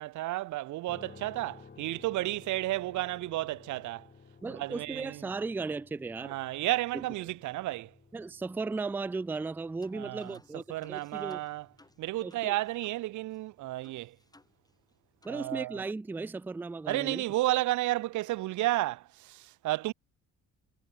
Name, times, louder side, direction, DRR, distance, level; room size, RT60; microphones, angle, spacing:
voice 1, 0.0-4.1 4.5-5.2 6.2-7.9 9.9-10.4 10.7-11.7 12.0-14.2 15.3-15.8 16.9-19.9, right 17 dB, 75° right, 0.6 m, -32 dB
sound 1, 0.9-14.9, left 5 dB, 35° left, 3.8 m, -57 dB
voice 2, 4.4-6.3 6.9-7.0 8.1-11.4 12.2-12.5 15.2-17.2, right 3 dB, 5° right, 0.3 m, -36 dB
sound 2, 9.4-9.5 9.8-13.0 13.3-13.4 13.8-14.9 15.2-15.4, left 2 dB, 10° left, 4.0 m, -62 dB
cardioid pair, 90°, 30 cm